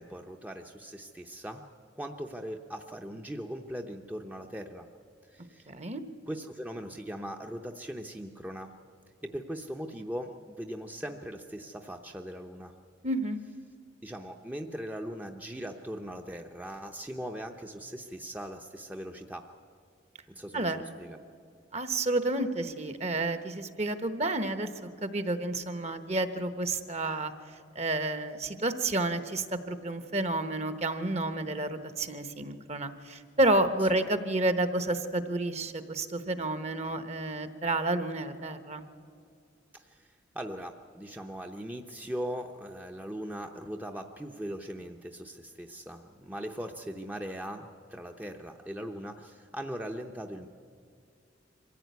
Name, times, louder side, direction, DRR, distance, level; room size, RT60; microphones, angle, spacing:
voice 1, 0.0-1.7 2.0-4.9 5.3-5.7 6.3-8.7 9.2-12.7 14.0-19.5 20.3-21.2 39.7-50.5, equal, 10° right, 3 dB, 0.7 m, -40 dB
voice 2, 5.7-6.0 13.0-13.4 20.5-20.8 21.7-24.7 25.0-27.3 27.7-38.9, right 2 dB, 35° right, 10 dB, 1.1 m, -30 dB
24.0 x 15.5 x 9.4 m, 2.3 s
head